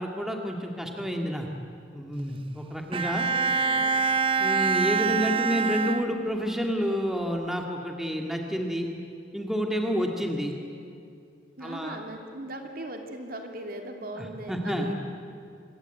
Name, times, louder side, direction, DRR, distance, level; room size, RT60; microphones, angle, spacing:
voice 1, 0.0-1.5 1.9-3.3 4.4-8.9 9.3-10.5 11.6-12.0 14.2-14.9, equal, ahead, 2 dB, 2.0 m, -29 dB
Bowed string instrument, 2.9-6.6, right 5 dB, 30° right, 0.7 m, -26 dB
voice 2, 3.1-4.0 11.6-15.0, right 1 dB, 50° right, 3 dB, 2.8 m, -39 dB
26.0 x 22.5 x 9.1 m, 2.4 s
head